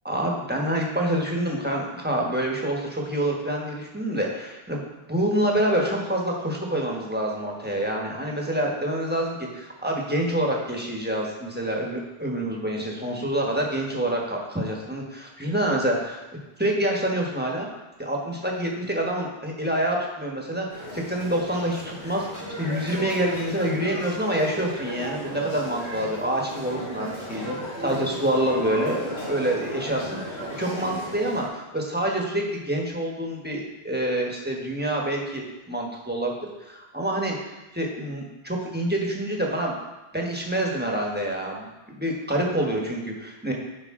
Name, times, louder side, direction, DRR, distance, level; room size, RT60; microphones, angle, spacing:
voice 1, 0.0-16.2 16.6-17.7 18.0-22.3 22.6-36.3 36.6-37.3 37.7-39.7 40.1-43.5, right 1 dB, 10° right, -1 dB, 1.1 m, -27 dB
sound 1, 20.7-31.5, equal, 75° left, 3.1 m, -35 dB
9.9 x 5.3 x 3.7 m, 1.0 s
omnidirectional pair, 1.1 m